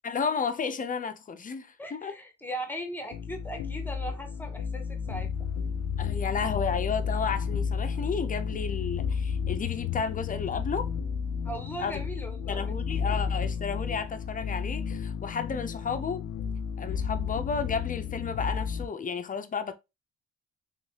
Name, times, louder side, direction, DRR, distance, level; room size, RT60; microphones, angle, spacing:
voice 1, 0.0-2.1 6.0-10.9 11.8-12.0 12.5-16.2 16.8-19.7, left 5 dB, 25° left, 0.5 m, -32 dB
voice 2, 1.8-5.3 11.4-13.3 16.9-17.0, right 1 dB, 5° left, 0.9 m, -39 dB
sound 1, 3.1-18.9, left 6 dB, 90° left, 0.5 m, -32 dB
3.2 x 3.1 x 2.8 m
cardioid pair, 90°, 30 cm